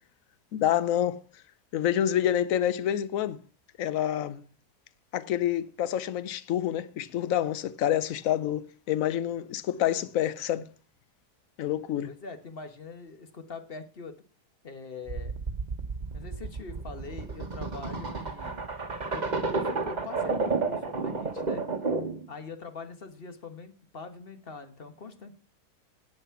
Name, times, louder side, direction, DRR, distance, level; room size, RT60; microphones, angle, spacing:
voice 1, 0.5-1.2 1.7-3.4 3.8-4.4 5.1-10.7 11.6-12.1, left 11 dB, 65° left, 1.1 m, -27 dB
voice 2, 12.0-14.1 14.6-15.4 16.1-18.7 19.1-21.7 22.3-25.3, left 4 dB, 40° left, 1.3 m, -43 dB
sound 1, 15.1-22.2, right 4 dB, 30° right, 1.3 m, -31 dB
11.0 x 8.5 x 5.8 m
omnidirectional pair, 1.6 m